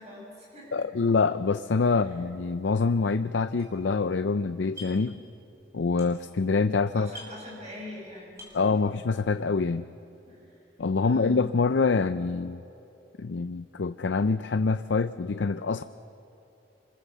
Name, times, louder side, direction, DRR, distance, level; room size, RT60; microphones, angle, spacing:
voice 1, 0.0-0.9 1.9-2.2 6.9-8.8 10.3-10.6 11.0-11.4, left 1 dB, 40° right, -2 dB, 7.9 m, -44 dB
voice 2, 0.7-5.2 5.7-7.1 8.5-9.8 10.8-12.6 13.2-15.8, left 4 dB, 75° left, 11 dB, 0.5 m, -25 dB
sound 1, 3.6-4.3 4.5-5.2 5.5-6.5 6.7-6.8 7.0-8.0 8.3-8.8, left 1 dB, 15° right, 5.8 m, -47 dB
26.0 x 24.0 x 7.4 m, 2.8 s
head